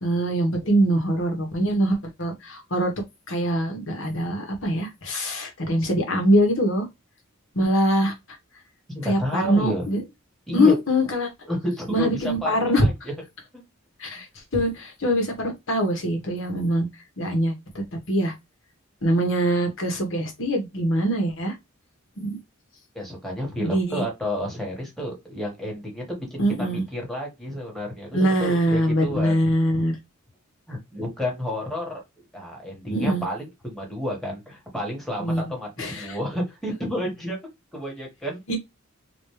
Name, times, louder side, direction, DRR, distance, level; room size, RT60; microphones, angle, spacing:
voice 1, 0.0-2.9 3.3-6.9 7.5-8.1 9.0-10.0 10.5-11.3 11.9-12.9 14.0-14.3 14.5-16.9 17.2-17.5 18.1-18.3 19.0-21.5 22.2-22.4 23.6-24.0 26.4-26.8 28.1-30.0 32.8-33.2 35.2-35.4 35.8-36.2 38.5-38.6, equal, 65° left, 1.4 m, -23 dB
voice 2, 8.9-9.9 10.5-10.8 11.5-13.1 23.0-29.4 30.7-32.0 32.3-37.4 37.7-38.4, equal, ahead, 1.7 m, -30 dB
4.2 x 2.6 x 3.3 m
head